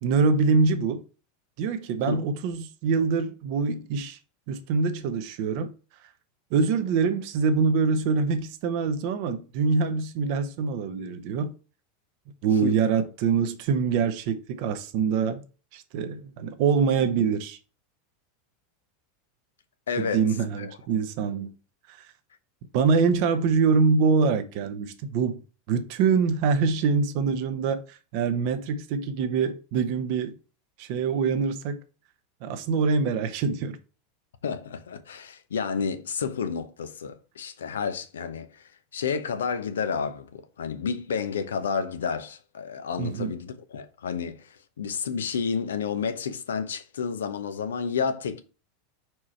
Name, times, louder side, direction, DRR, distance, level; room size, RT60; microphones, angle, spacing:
voice 1, 0.0-1.0 1.6-4.2 4.5-5.7 6.5-11.5 12.4-15.4 15.7-17.6 20.0-21.5 22.7-25.4 25.7-30.3 30.8-31.8 32.4-33.8 43.0-43.3, right 5 dB, 55° right, 0.9 m, -24 dB
voice 2, 19.9-20.3 20.6-20.7 34.4-48.4, left 6 dB, 80° left, 0.8 m, -30 dB
4.9 x 4.6 x 4.3 m
hypercardioid pair, 90°, 0 cm